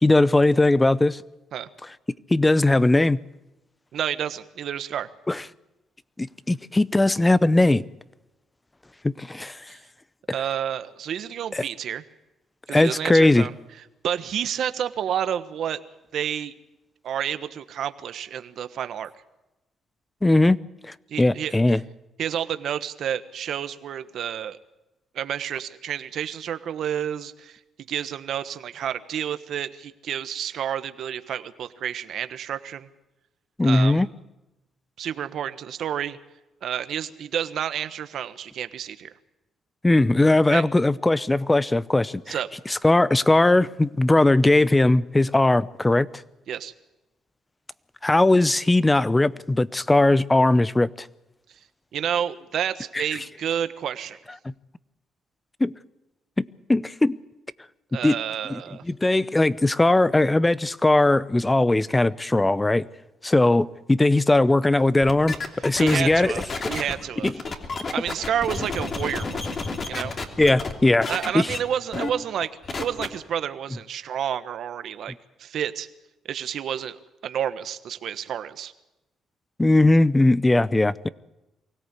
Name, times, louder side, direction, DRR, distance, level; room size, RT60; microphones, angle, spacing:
voice 1, 0.0-1.2 2.3-3.2 5.3-5.4 6.2-7.8 9.0-9.6 11.5-11.6 12.7-13.5 20.2-20.6 20.8-21.8 33.6-34.1 39.8-42.3 42.7-46.1 48.0-51.1 52.9-53.0 54.4-54.5 55.6-55.7 56.4-57.2 58.0-58.1 58.5-58.6 58.9-62.9 63.2-65.4 65.6-66.7 67.2-67.3 70.4-71.1 71.3-71.5 79.6-81.1, left 2 dB, 15° left, 0.7 m, -19 dB
voice 2, 3.9-5.1 9.7-9.8 10.3-12.0 12.7-13.5 14.0-15.8 16.1-16.5 17.0-19.1 21.1-21.6 22.2-24.6 25.1-27.6 27.9-32.9 33.6-34.0 35.0-36.2 36.6-39.1 40.5-40.6 42.3-42.5 46.5-46.7 51.9-54.2 57.9-58.8 65.8-66.4 66.7-67.3 67.9-69.6 69.9-70.1 71.1-72.5 72.8-75.1 75.4-75.9 76.3-78.7, right 9 dB, 70° right, 1.3 m, -30 dB
sound 1, 65.0-70.7 71.0-71.6 71.9-72.1 72.4-73.1, left 3 dB, 40° left, 3.0 m, -31 dB
24.0 x 17.0 x 8.3 m
cardioid pair, 90°, 0 cm